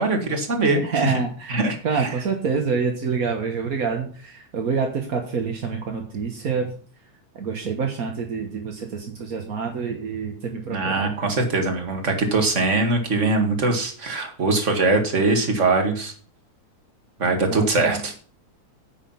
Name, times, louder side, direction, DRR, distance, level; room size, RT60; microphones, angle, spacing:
voice 1, 0.0-1.2 1.5-2.1 10.7-16.1 17.2-18.1, right 3 dB, 30° right, 4 dB, 1.9 m, -22 dB
voice 2, 0.8-6.7 7.3-11.3 17.5-18.0, right 5 dB, 45° right, 2 dB, 1.1 m, -27 dB
9.9 x 7.4 x 5.7 m, 0.43 s
omnidirectional pair, 3.4 m